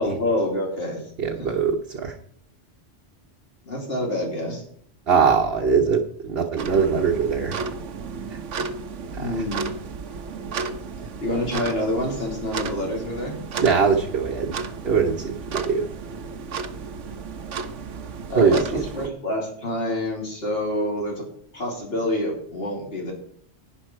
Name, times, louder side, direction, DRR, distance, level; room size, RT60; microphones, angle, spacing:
voice 1, 0.0-1.1 1.4-1.6 3.6-4.6 9.2-9.7 11.2-13.3 18.3-21.2 21.5-23.1, left 1 dB, 55° left, -1 dB, 3.2 m, -27 dB
voice 2, 1.2-2.1 5.1-7.6 13.6-14.6 14.8-15.9 18.4-18.8, right 5 dB, 55° right, 1 dB, 1.2 m, -21 dB
sound 1, 6.6-19.1, right 5 dB, 90° right, 1.2 m, -33 dB
11.0 x 9.7 x 4.4 m, 0.62 s
omnidirectional pair, 1.2 m